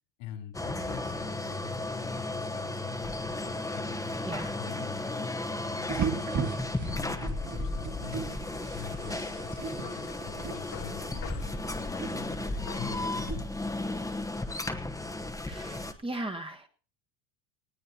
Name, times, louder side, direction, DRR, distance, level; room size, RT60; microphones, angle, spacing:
voice 1, 0.2-4.2 4.6-8.3 8.7-13.5, left 9 dB, 75° left, 4 dB, 4.0 m, -45 dB
sound 1, 0.5-15.9, left 2 dB, 5° left, 1.0 m, -34 dB
voice 2, 4.2-4.6 15.5-16.7, right 1 dB, 10° right, 3 dB, 1.3 m, -37 dB
sound 2, 5.9-13.4, right 6 dB, 35° right, 2.0 m, -38 dB
sound 3, 7.6-13.3, left 10 dB, 55° left, 2.2 m, -48 dB
19.5 x 17.5 x 2.9 m, 0.38 s
supercardioid pair, 120°, 50 cm